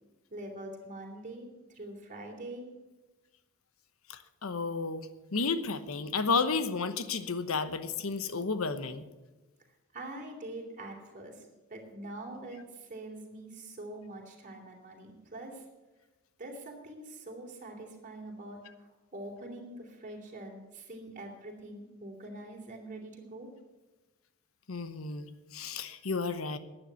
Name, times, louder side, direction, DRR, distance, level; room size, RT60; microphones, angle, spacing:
voice 1, 0.3-2.7 9.9-15.6 16.4-23.5, right 1 dB, 40° right, 1 dB, 3.1 m, -44 dB
voice 2, 4.1-9.0 24.7-26.6, left 4 dB, 90° left, 12 dB, 1.0 m, -32 dB
11.5 x 9.2 x 8.0 m, 1.1 s
head